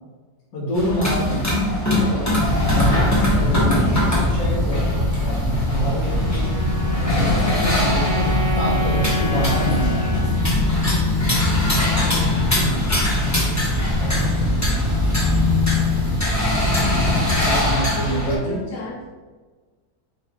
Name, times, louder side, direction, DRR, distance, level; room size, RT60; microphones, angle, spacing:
voice 1, 0.5-1.4 2.0-2.2 2.7-6.5 7.0-8.3 8.5-10.4 12.5-12.8 13.9-14.6 17.4-18.6, equal, 85° left, -6 dB, 1.7 m, -27 dB
sound 1, 0.7-18.4, equal, 15° left, 0.6 m, -23 dB
sound 2, 2.4-17.8, left 2 dB, 35° right, 0.3 m, -23 dB
sound 3, 5.9-12.3, left 2 dB, 50° right, 1.1 m, -28 dB
voice 2, 7.0-7.4 9.0-9.2 11.1-11.8 12.1-14.0 16.4-17.0 17.5-19.1, left 3 dB, 65° left, -3 dB, 1.0 m, -37 dB
3.9 x 3.1 x 4.3 m, 1.4 s
omnidirectional pair, 2.0 m